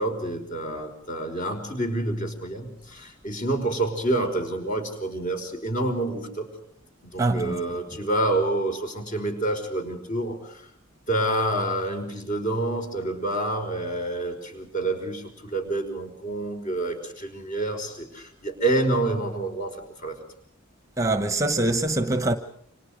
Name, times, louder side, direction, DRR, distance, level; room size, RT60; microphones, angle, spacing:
voice 1, 0.0-6.5 7.0-10.7 11.1-20.2, right 1 dB, 40° left, 5.3 m, -28 dB
voice 2, 7.2-7.6 21.0-22.4, right 2 dB, 15° right, 1.1 m, -23 dB
29.5 x 26.5 x 5.1 m
head